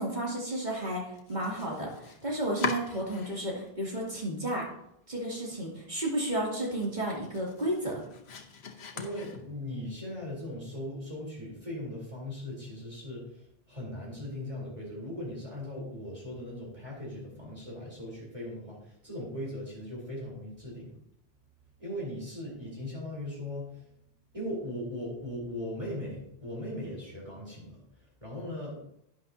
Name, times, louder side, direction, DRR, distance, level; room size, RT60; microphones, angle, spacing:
voice 1, 0.0-4.7 5.1-8.0, right 1 dB, 45° right, -3 dB, 2.8 m, -32 dB
Domestic sounds home sounds, 1.1-3.7 4.0-4.8 5.1-5.2 5.6-5.7 6.1-9.8, left 5 dB, 85° left, 1.2 m, -41 dB
voice 2, 8.9-20.9 21.8-23.8 24.3-28.8, left 1 dB, 30° right, -5 dB, 3.8 m, -39 dB
11.0 x 9.9 x 2.7 m, 0.77 s
omnidirectional pair, 1.0 m